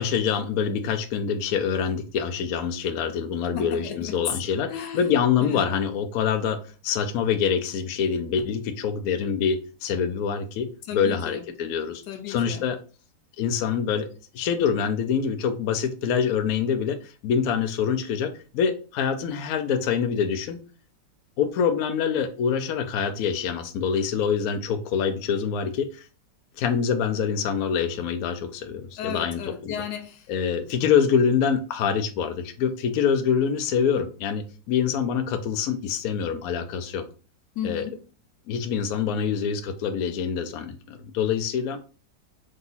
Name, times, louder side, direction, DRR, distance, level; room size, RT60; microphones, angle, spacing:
voice 1, 0.0-12.0 12.3-12.8 13.4-14.1 14.3-20.6 21.4-26.0 26.6-29.7 30.3-37.0 37.6-37.8 38.5-41.8, left 7 dB, 65° left, 0.9 m, -25 dB
voice 2, 3.5-4.2 4.7-5.1 5.4-5.9 10.9-11.4 12.1-12.6 29.0-30.3 37.5-38.0, left 8 dB, 85° left, 1.4 m, -35 dB
3.8 x 2.7 x 3.9 m
omnidirectional pair, 1.9 m